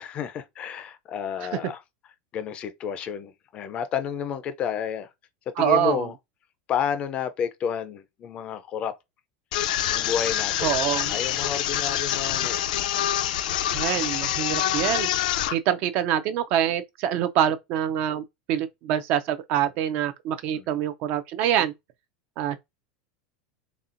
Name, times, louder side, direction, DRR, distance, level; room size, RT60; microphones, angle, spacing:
voice 1, 0.0-1.8 2.3-5.1 5.5-6.1 6.7-8.9 9.9-10.7 11.1-12.7 20.5-20.7, left 8 dB, 25° left, 0.4 m, -30 dB
voice 2, 5.6-6.1 10.6-11.1 13.7-15.1 15.5-21.7 22.4-22.6, right 10 dB, 40° right, 0.4 m, -25 dB
sound 1, 9.5-15.5, left 12 dB, 80° left, 0.5 m, -26 dB
4.1 x 3.5 x 2.5 m
supercardioid pair, 165°, 4 cm